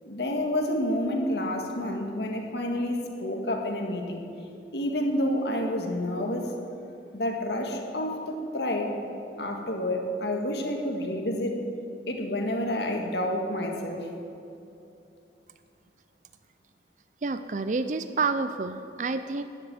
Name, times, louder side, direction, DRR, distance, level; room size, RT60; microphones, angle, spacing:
voice 1, 0.0-4.2 4.7-6.5 7.1-8.9 9.4-11.6 12.1-14.1, left 1 dB, 70° left, 2 dB, 2.0 m, -29 dB
voice 2, 17.2-19.4, right 4 dB, 45° right, 10 dB, 0.5 m, -29 dB
12.0 x 10.5 x 9.3 m, 2.7 s
head